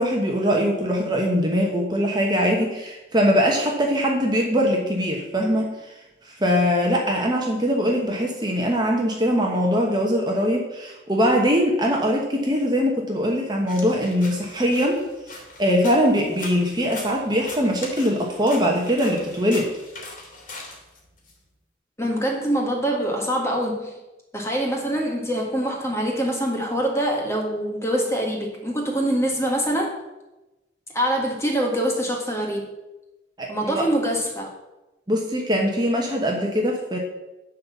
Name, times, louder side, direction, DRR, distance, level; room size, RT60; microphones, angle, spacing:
voice 1, 0.0-5.7 6.2-15.0 15.6-19.7 33.4-33.8 35.1-37.0, equal, 25° right, 0 dB, 1.1 m, -22 dB
sound 1, 13.7-21.3, left 2 dB, 45° left, 2.4 m, -41 dB
voice 2, 22.0-23.9 24.3-29.9 30.9-32.7 33.5-34.5, right 1 dB, 15° left, 0 dB, 1.7 m, -24 dB
11.0 x 4.1 x 7.2 m, 1.0 s
head